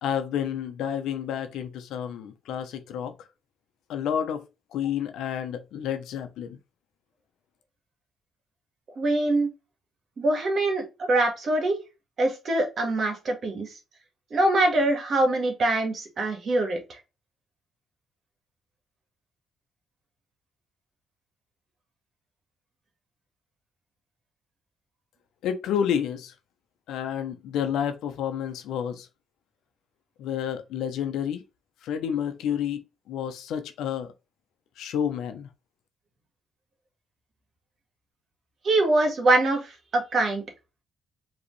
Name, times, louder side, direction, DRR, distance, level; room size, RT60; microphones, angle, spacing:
voice 1, 0.0-3.3 3.9-4.4 4.7-6.6 25.4-26.3 26.9-29.1 30.2-31.4 31.8-34.1 34.8-35.5, left 9 dB, 85° left, 0.8 m, -30 dB
voice 2, 9.0-9.5 10.2-11.8 12.2-13.7 14.3-17.0 38.6-40.4, right 2 dB, 50° right, 1.7 m, -24 dB
5.1 x 3.2 x 3.2 m
cardioid pair, 90°, 0 cm